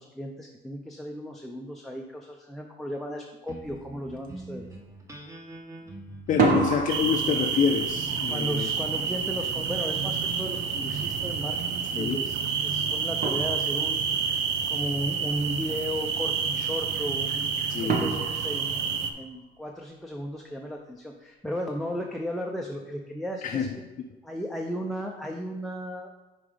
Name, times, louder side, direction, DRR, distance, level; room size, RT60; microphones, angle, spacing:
voice 1, 0.0-4.7 6.4-6.7 8.3-14.0 14.7-17.5 17.8-23.8 24.2-26.1, equal, ahead, 0 dB, 0.6 m, -35 dB
sound 1, 3.5-18.2, right 1 dB, 20° right, 1.1 m, -46 dB
sound 2, 3.6-3.8 4.2-4.7 6.2-11.0 12.7-12.8 13.2-14.1 17.9-19.6, right 5 dB, 55° right, 1.1 m, -31 dB
voice 2, 6.3-8.7 11.9-12.2 17.7-18.1 23.4-23.7, left 7 dB, 45° left, 3 dB, 0.5 m, -27 dB
sound 3, 6.9-19.1, right 6 dB, 80° right, 0.6 m, -29 dB
5.4 x 4.8 x 4.9 m, 1.1 s
cardioid pair, 110°, 17 cm